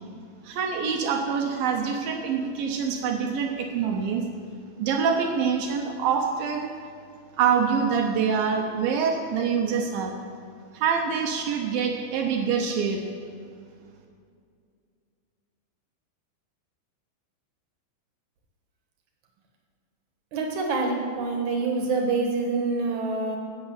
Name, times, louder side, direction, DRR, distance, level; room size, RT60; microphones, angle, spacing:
voice 1, 0.4-4.3 4.8-6.7 7.4-10.1 10.7-13.0, right 6 dB, 85° right, 3 dB, 2.0 m, -25 dB
voice 2, 20.3-23.4, right 3 dB, 65° right, 2 dB, 2.0 m, -26 dB
14.5 x 6.8 x 8.1 m, 2.3 s
omnidirectional pair, 5.4 m